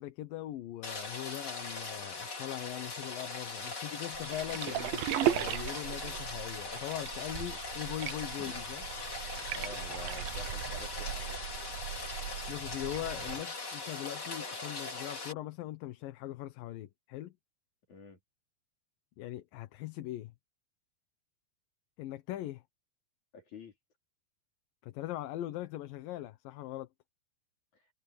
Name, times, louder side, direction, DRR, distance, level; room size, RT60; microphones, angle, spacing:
voice 1, 0.0-8.9 12.5-17.4 19.2-20.3 22.0-22.6 24.8-26.9, left 14 dB, 75° left, 2.7 m, -41 dB
Rain, 0.8-15.3, left 3 dB, 30° left, 3.7 m, -40 dB
sound 1, 4.1-13.4, right 13 dB, 80° right, 2.6 m, -37 dB
voice 2, 9.5-11.4 17.9-18.2 23.3-23.7 27.7-27.8, left 4 dB, 55° left, 5.9 m, -49 dB
omnidirectional pair, 4.1 m